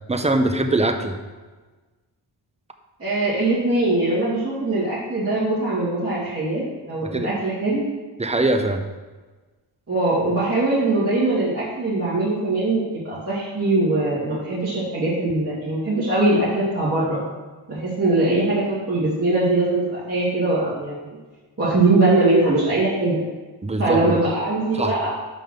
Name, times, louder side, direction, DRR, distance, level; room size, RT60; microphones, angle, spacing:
voice 1, 0.1-1.1 7.1-7.3 8.2-8.8 23.6-24.2 24.7-24.9, right 2 dB, 15° right, 6 dB, 0.8 m, -22 dB
voice 2, 3.0-7.8 9.9-17.2 17.7-21.0 21.6-23.2 23.8-25.1, right 2 dB, 30° right, -10 dB, 2.6 m, -21 dB
5.8 x 5.3 x 6.6 m, 1.3 s
cardioid pair, 75°, 47 cm